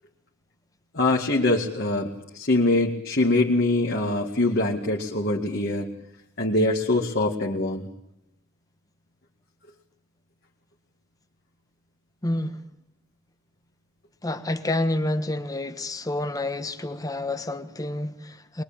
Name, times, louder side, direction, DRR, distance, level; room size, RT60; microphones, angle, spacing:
voice 1, 0.9-5.9 6.4-7.9, left 2 dB, 50° left, 2.2 m, -23 dB
voice 2, 12.2-12.6 14.2-18.6, left 1 dB, 15° left, 1.3 m, -29 dB
23.0 x 21.5 x 8.9 m
head